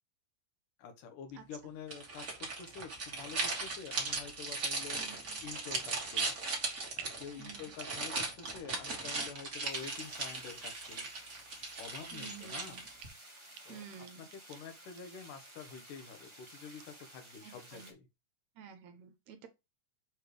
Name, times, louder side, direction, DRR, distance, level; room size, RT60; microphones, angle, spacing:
voice 1, 0.8-6.3 7.0-11.1 11.6-12.9 13.6-18.1, left 6 dB, 75° left, 2.7 m, -48 dB
sound 1, 1.9-13.1, right 3 dB, 40° right, 1.0 m, -38 dB
sound 2, 3.8-4.0 4.6-5.1 5.4-5.8 6.1-7.3 7.6-8.2 8.5-8.6 9.3-9.4 10.0-10.1 10.8-11.0 11.3-11.4 11.9-12.6 13.0-13.1 13.5-13.6 13.9-14.6 15.0-15.1 15.4-15.5 15.9-16.4 16.8-16.9, right 8 dB, 90° right, 1.3 m, -46 dB
voice 2, 5.0-5.4 7.4-7.7 12.1-12.9 13.7-14.3 17.4-17.9 18.6-19.5, right 7 dB, 70° right, 1.9 m, -51 dB
sound 3, 9.6-17.9, right 1 dB, 15° right, 0.9 m, -55 dB
6.8 x 3.3 x 4.9 m
omnidirectional pair, 3.8 m